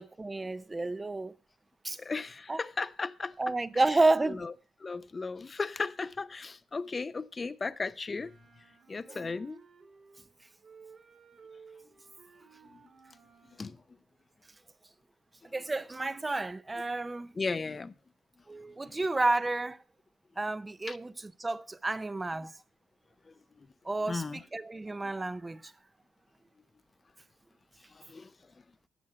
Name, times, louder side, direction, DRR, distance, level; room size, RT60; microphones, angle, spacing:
voice 1, 0.0-1.3 1.8-2.0 2.5-2.6 3.4-4.5 9.1-9.3 15.5-17.3 18.5-19.8 20.4-22.6 23.8-25.7, right 2 dB, 20° right, 0.5 m, -31 dB
voice 2, 2.0-3.3 4.3-4.5 4.8-8.3 8.9-9.6 12.7-12.8 13.5-13.8 17.4-17.9 20.9-21.0 24.1-24.4 27.9-28.3, left 4 dB, 30° left, 0.5 m, -35 dB
Wind instrument woodwind instrument, 8.1-10.3 10.6-13.7, right 5 dB, 50° right, 2.3 m, -57 dB
11.5 x 7.3 x 5.6 m
cardioid pair, 90°, 0 cm